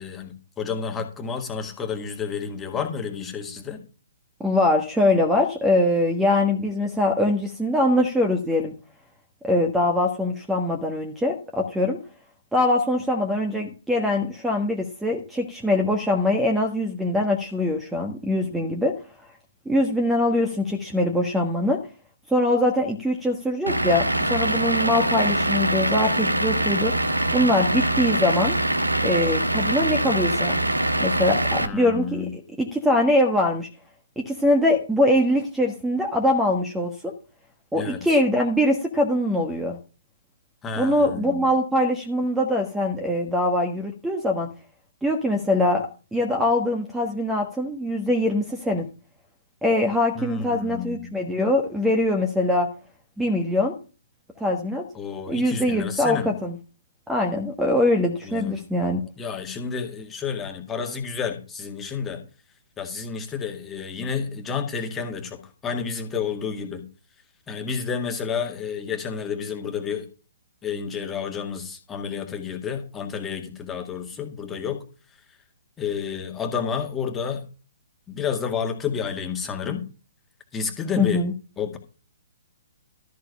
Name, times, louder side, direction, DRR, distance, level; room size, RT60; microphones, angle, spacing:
voice 1, 0.0-3.8 31.6-32.3 37.7-38.0 40.6-41.4 50.2-51.1 54.9-56.3 58.3-58.5 59.2-62.2 62.8-66.8 67.5-70.1 70.6-74.8 75.8-77.4 78.1-79.8 80.5-81.2 81.6-81.8, left 6 dB, 15° left, 4 dB, 1.9 m, -30 dB
voice 2, 4.4-8.7 9.4-12.0 12.5-18.9 19.6-21.8 22.3-26.9 27.3-28.6 29.0-30.6 31.0-33.7 34.2-37.1 37.7-39.8 40.7-44.5 45.0-45.8 46.1-48.9 49.6-52.7 53.2-53.7 54.4-54.8 55.3-56.6 57.1-59.0 81.0-81.3, left 1 dB, 5° right, 4 dB, 1.4 m, -23 dB
Vehicle / Engine, 23.7-31.7, right 1 dB, 85° right, 1.2 m, -23 dB
13.0 x 4.8 x 6.5 m, 0.34 s
figure-of-eight pair, 125°, 0 cm